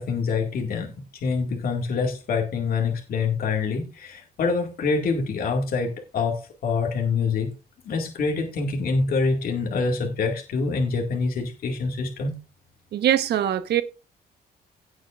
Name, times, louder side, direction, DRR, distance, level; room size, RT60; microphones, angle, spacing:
voice 1, 0.0-7.5 7.8-12.4, left 4 dB, 60° left, 2.1 m, -26 dB
voice 2, 12.9-13.8, right 11 dB, 80° right, 1.2 m, -22 dB
17.5 x 7.8 x 2.5 m
cardioid pair, 145°, 17 cm